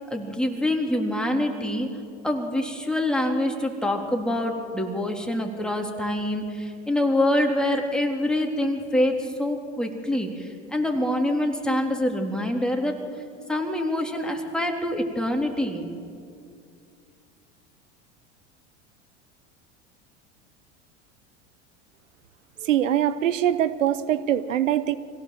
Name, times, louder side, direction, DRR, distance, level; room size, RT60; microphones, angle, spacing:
voice 1, 0.1-1.9 2.2-13.0 13.5-16.0, left 1 dB, ahead, 1 dB, 3.4 m, -25 dB
voice 2, 22.6-25.0, right 11 dB, 85° right, 15 dB, 0.9 m, -23 dB
25.0 x 16.5 x 7.7 m, 2.3 s
hypercardioid pair, 90°, 37 cm